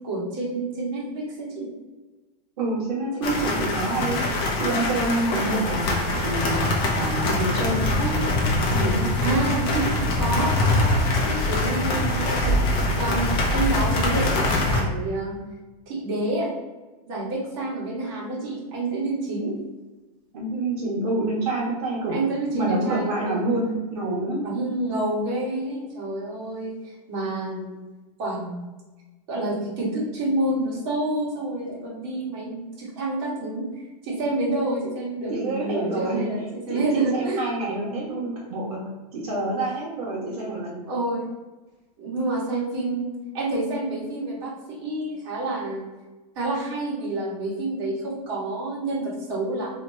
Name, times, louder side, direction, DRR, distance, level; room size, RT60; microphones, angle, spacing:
voice 1, 0.0-1.7 3.3-3.5 9.2-9.9 10.2-15.4 15.9-16.5 17.1-19.5 22.1-23.4 24.4-27.8 28.2-28.6 29.3-37.4 40.9-41.3 42.0-45.8 46.3-49.8, right 2 dB, 40° right, -6 dB, 1.4 m, -28 dB
voice 2, 2.6-4.2 4.6-8.2 8.7-9.3 9.6-9.9 20.3-22.2 22.5-24.4 35.3-36.4 36.7-40.8, right 2 dB, 70° right, -5 dB, 1.0 m, -27 dB
sound 1, 3.2-14.8, left 2 dB, 25° left, 0.5 m, -23 dB
2.8 x 2.2 x 4.2 m, 1.2 s
supercardioid pair, 170°, 20 cm